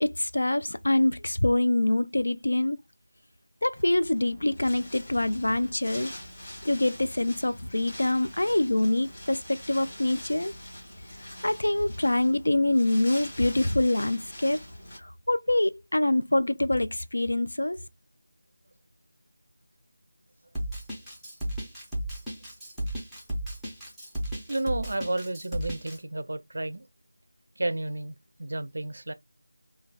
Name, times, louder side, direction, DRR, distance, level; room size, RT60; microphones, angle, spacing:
voice 1, 0.0-2.8 3.6-6.1 6.7-10.5 11.4-14.6 15.3-17.8, left 1 dB, 85° left, 0.3 m, -25 dB
Wind, 3.7-15.0, left 1 dB, 15° left, 1.3 m, -44 dB
Drum kit, 20.5-26.0, right 1 dB, ahead, 0.5 m, -34 dB
voice 2, 24.5-26.9 27.6-29.1, right 2 dB, 60° right, 0.4 m, -32 dB
3.1 x 2.2 x 2.2 m
figure-of-eight pair, 175°, 0 cm